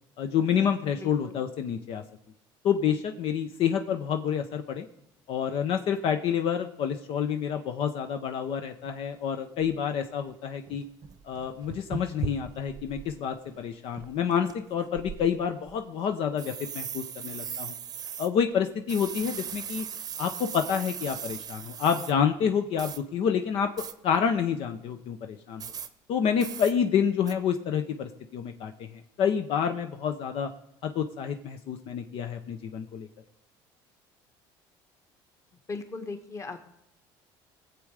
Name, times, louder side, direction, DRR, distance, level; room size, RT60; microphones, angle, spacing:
voice 1, 0.2-2.0 2.6-4.9 5.3-10.8 11.2-17.7 18.2-19.9 20.2-23.7 24.0-25.6 26.1-30.5 30.8-33.1, left 7 dB, 60° left, 6 dB, 0.8 m, -28 dB
voice 2, 1.0-1.4 35.7-36.7, left 3 dB, 25° left, 6 dB, 1.4 m, -38 dB
sound 1, 8.8-8.9 9.6-9.8 10.3-10.4 10.7-13.1 13.5-13.6 13.9-14.5 14.9-15.7 16.4-18.3 18.9-22.1 22.8-23.0 23.8-23.9 25.6-25.9 26.4-26.7 27.3-27.4, right 7 dB, 40° right, 0.8 m, -38 dB
19.0 x 7.5 x 4.9 m, 0.81 s
cardioid pair, 110°, 10 cm